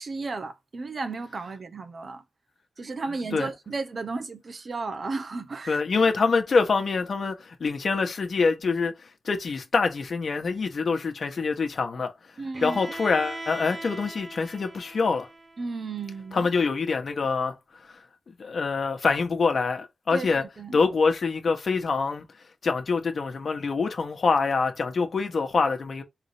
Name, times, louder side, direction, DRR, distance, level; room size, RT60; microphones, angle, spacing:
voice 1, 0.0-2.2 2.8-5.8 12.4-12.8 15.6-16.5 20.1-20.8, right 3 dB, 60° right, 0.9 m, -34 dB
voice 2, 5.7-8.9 9.2-12.1 12.6-15.3 16.3-17.5 18.3-20.4 20.7-22.2 22.6-26.0, left 4 dB, 65° left, 1.2 m, -25 dB
Bowed string instrument, 12.5-16.4, right 2 dB, 35° right, 0.7 m, -40 dB
3.9 x 3.4 x 3.2 m
cardioid pair, 40°, 0 cm